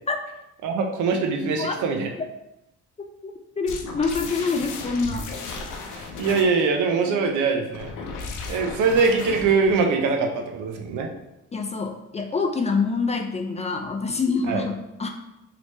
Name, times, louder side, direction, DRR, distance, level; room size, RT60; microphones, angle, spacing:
voice 1, 0.6-2.1 5.9-7.9 8.5-11.1 14.5-14.6, right 4 dB, 80° right, 3 dB, 0.6 m, -23 dB
voice 2, 3.2-5.3 11.5-15.1, left 4 dB, 25° left, 4 dB, 0.3 m, -26 dB
sound 1, 3.7-6.6 7.7-9.9, left 3 dB, 90° left, 0.6 m, -35 dB
3.2 x 2.9 x 3.1 m, 0.89 s
cardioid pair, 90°, 30 cm